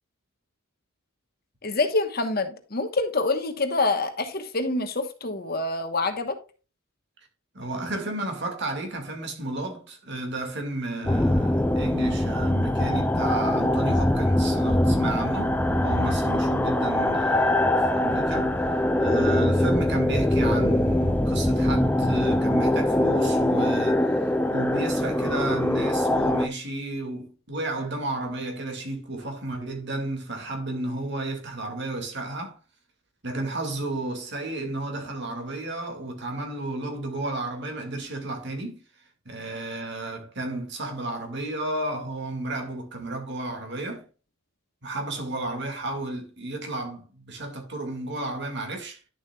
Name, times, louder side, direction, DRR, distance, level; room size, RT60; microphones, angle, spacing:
voice 1, 1.6-6.4, left 3 dB, 45° left, 1.1 m, -26 dB
voice 2, 7.5-32.6 33.2-38.8 39.3-44.0 44.8-49.0, right 2 dB, 50° right, 2.2 m, -32 dB
sound 1, 11.1-26.5, left 1 dB, 5° left, 0.4 m, -23 dB
11.0 x 7.2 x 2.3 m
head